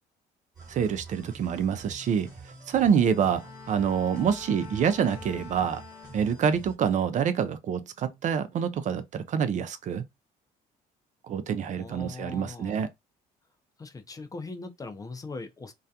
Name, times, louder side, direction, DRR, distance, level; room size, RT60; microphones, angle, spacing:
sound 1, 0.5-6.7, right 3 dB, 20° right, 1.3 m, -47 dB
voice 1, 0.7-2.3 2.7-5.8 6.1-10.0 11.2-12.9, right 7 dB, 45° right, 0.4 m, -26 dB
Bowed string instrument, 3.1-6.7 7.2-7.5, left 7 dB, 60° left, 0.8 m, -47 dB
voice 2, 11.6-12.8 13.8-15.7, left 3 dB, 20° left, 0.4 m, -40 dB
2.3 x 2.1 x 2.6 m
cardioid pair, 110°, 17 cm